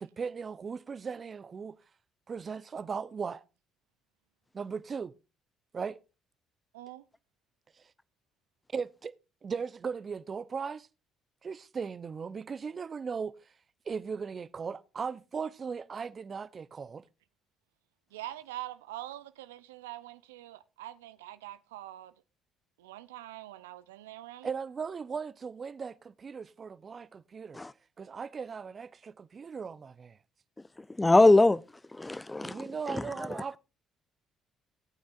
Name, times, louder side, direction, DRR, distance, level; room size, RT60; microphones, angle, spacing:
voice 1, 0.0-1.8 2.3-3.4 4.5-5.1 5.7-6.0 8.7-9.1 9.4-10.9 11.4-13.3 13.9-17.0 24.4-27.6 28.0-30.2 32.4-33.6, right 5 dB, 40° right, 0.6 m, -37 dB
voice 2, 6.7-7.0 18.1-22.1 22.8-24.5, right 14 dB, 85° right, 0.5 m, -44 dB
voice 3, 31.0-31.6 32.0-32.7, left 2 dB, 15° left, 0.5 m, -21 dB
18.0 x 8.7 x 2.5 m
hypercardioid pair, 50°, 0 cm